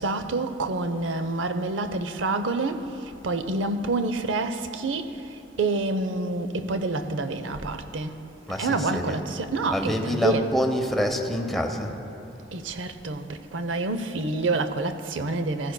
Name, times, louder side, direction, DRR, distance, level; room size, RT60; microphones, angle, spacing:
voice 1, 0.0-8.2 8.5-10.5 12.5-15.7, right 3 dB, 85° right, 0.6 m, -28 dB
voice 2, 8.5-9.2 9.7-11.9, equal, ahead, 0.8 m, -26 dB
15.0 x 15.0 x 2.2 m
head